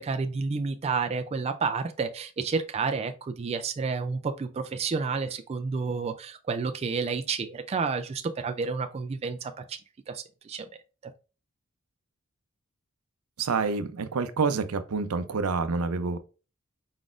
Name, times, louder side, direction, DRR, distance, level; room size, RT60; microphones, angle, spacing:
voice 1, 0.0-9.8 10.1-10.7, right 4 dB, 30° right, 0.3 m, -30 dB
voice 2, 13.4-16.2, right 4 dB, 80° right, 0.5 m, -27 dB
4.8 x 4.0 x 2.4 m
head